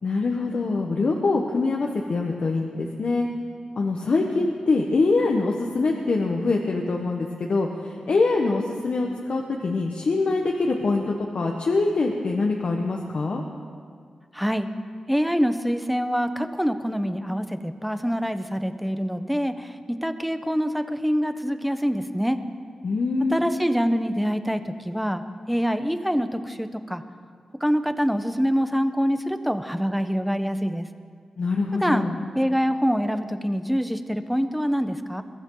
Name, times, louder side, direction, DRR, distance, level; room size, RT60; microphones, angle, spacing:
voice 1, 0.0-3.3 3.8-13.4 22.8-23.5 31.4-32.2, left 3 dB, 65° left, 0 dB, 1.4 m, -24 dB
voice 2, 14.3-14.7 15.1-22.4 23.3-25.2 25.5-27.0 27.6-30.9 31.8-32.1 32.3-35.2, equal, ahead, 9 dB, 1.2 m, -25 dB
22.5 x 14.5 x 4.0 m, 2.1 s
cardioid pair, 50°, 2 cm